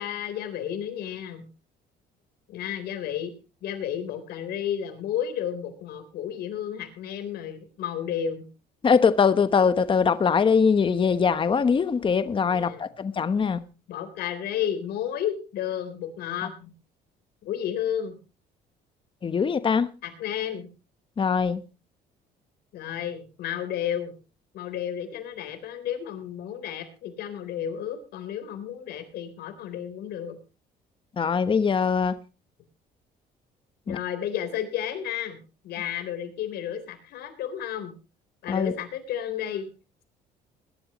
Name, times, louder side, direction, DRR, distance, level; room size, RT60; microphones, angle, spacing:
voice 1, 0.0-1.4 2.5-3.3 3.6-8.4 12.4-12.8 13.9-16.7 17.4-18.2 20.0-20.7 22.7-24.1 24.5-30.3 33.9-35.4 35.6-37.9 38.4-39.7, left 9 dB, 75° left, 3.8 m, -32 dB
voice 2, 8.8-13.6 19.2-19.9 21.2-21.6 31.2-32.2 33.9-34.0 38.5-38.7, left 6 dB, 30° left, 1.1 m, -22 dB
21.5 x 12.0 x 3.0 m
cardioid pair, 110°, 17 cm